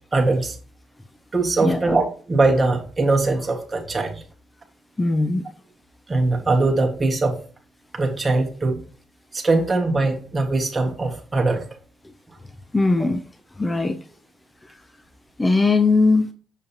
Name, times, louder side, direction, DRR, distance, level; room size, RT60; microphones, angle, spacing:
voice 1, 0.1-0.5 1.3-4.2 6.1-7.4 7.9-8.8 9.3-11.6 13.0-13.1, right 3 dB, 25° right, 0 dB, 1.6 m, -21 dB
voice 2, 1.6-1.9 5.0-5.4 12.7-13.2 13.6-14.0 15.4-16.3, left 3 dB, 15° left, 8 dB, 0.5 m, -19 dB
6.7 x 5.2 x 2.9 m, 0.39 s
cardioid pair, 90°, 0 cm